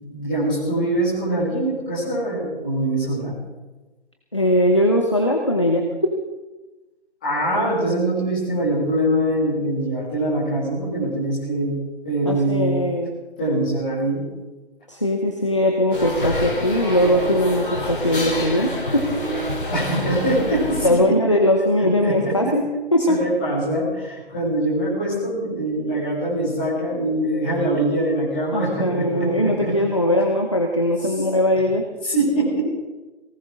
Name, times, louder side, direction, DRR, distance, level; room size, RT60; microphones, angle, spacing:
voice 1, 0.0-3.3 7.2-11.8 12.0-12.8 13.4-14.3 19.7-21.4 22.0-22.5 23.1-29.7 31.0-31.1 32.0-32.7, right 1 dB, 10° left, -9 dB, 2.4 m, -23 dB
voice 2, 4.3-5.9 12.3-13.1 14.9-19.1 20.8-22.7 22.9-23.2 28.5-31.8, left 1 dB, 25° left, 2 dB, 0.9 m, -20 dB
sound 1, 15.9-20.9, left 1 dB, 45° left, 3.5 m, -27 dB
19.0 x 18.0 x 3.7 m, 1.1 s
figure-of-eight pair, 180°, 35 cm